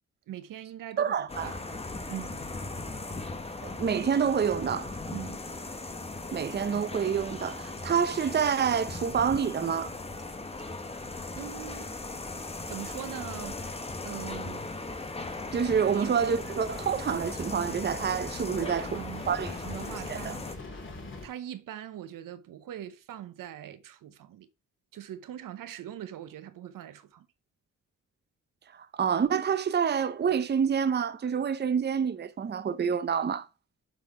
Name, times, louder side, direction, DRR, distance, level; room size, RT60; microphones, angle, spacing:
voice 1, 0.3-1.6 2.1-2.4 5.1-5.4 11.4-11.9 12.7-14.7 16.0-16.1 18.6-20.5 21.2-24.5 24.9-27.3, right 11 dB, 85° right, 0.9 m, -42 dB
voice 2, 1.0-1.5 3.6-5.0 6.3-9.9 15.5-19.0 19.3-19.5 20.1-20.3 28.7-33.5, right 7 dB, 35° right, 0.6 m, -27 dB
sound 1, 1.3-20.6, left 2 dB, 20° left, 1.0 m, -38 dB
sound 2, 13.7-21.3, left 2 dB, 40° left, 3.5 m, -44 dB
7.6 x 4.2 x 4.8 m
cardioid pair, 100°, 32 cm